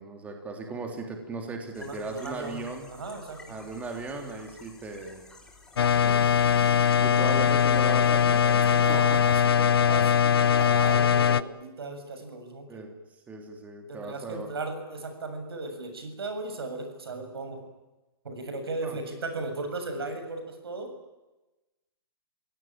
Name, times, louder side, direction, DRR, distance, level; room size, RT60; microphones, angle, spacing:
voice 1, 0.0-2.9 3.5-5.2 6.0-8.6 8.9-9.2 12.7-12.9 13.3-14.5 18.8-19.0, right 3 dB, 10° right, 3 dB, 3.3 m, -37 dB
sound 1, 1.7-8.8, left 3 dB, 5° left, 3.5 m, -50 dB
voice 2, 1.8-2.6 2.9-3.4 8.7-10.1 10.4-12.8 13.9-17.6 18.2-20.9, right 3 dB, 90° right, 6 dB, 7.3 m, -36 dB
sound 2, 5.8-11.4, left 8 dB, 80° left, 1.0 m, -21 dB
29.0 x 17.0 x 8.9 m, 1.1 s
hypercardioid pair, 150°, 12 cm